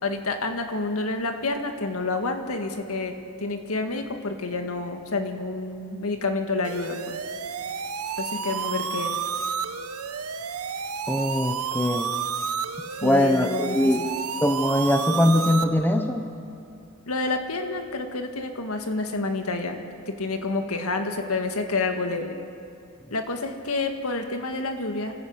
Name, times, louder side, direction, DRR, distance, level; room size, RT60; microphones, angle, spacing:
voice 1, 0.0-7.2 8.2-9.2 13.0-13.8 17.1-19.8 20.1-22.4 23.1-25.1, left 3 dB, 75° left, 5 dB, 1.9 m, -29 dB
sound 1, 6.6-15.6, right 6 dB, 85° right, 1.0 m, -31 dB
voice 2, 11.1-12.1 13.0-14.0 14.4-16.3, left 1 dB, 10° left, 6 dB, 1.0 m, -22 dB
28.0 x 14.5 x 8.2 m, 2.5 s
head